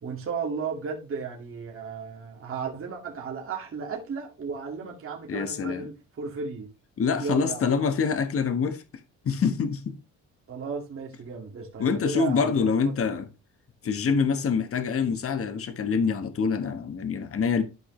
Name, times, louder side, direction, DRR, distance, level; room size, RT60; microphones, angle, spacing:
voice 1, 0.0-6.7 7.2-7.7 10.5-12.9, right 5 dB, 45° right, 2.2 m, -34 dB
voice 2, 5.3-5.9 7.0-8.8 9.2-9.9 11.8-13.3 13.8-17.6, left 5 dB, 50° left, 1.4 m, -25 dB
12.5 x 5.0 x 3.2 m
cardioid pair, 90°, 30 cm